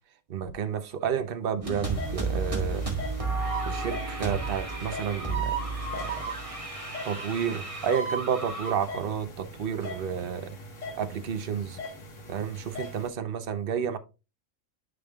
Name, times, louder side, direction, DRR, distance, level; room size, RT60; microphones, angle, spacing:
voice 1, 0.3-2.9 3.6-5.5 6.0-6.1 7.0-10.6 11.0-11.8 12.3-14.0, right 8 dB, 50° right, 0.8 m, -31 dB
sound 1, 1.6-8.8, right 3 dB, 25° right, 1.7 m, -32 dB
sound 2, 1.8-13.1, left 2 dB, 65° left, 1.8 m, -42 dB
9.8 x 5.2 x 2.3 m
omnidirectional pair, 1.4 m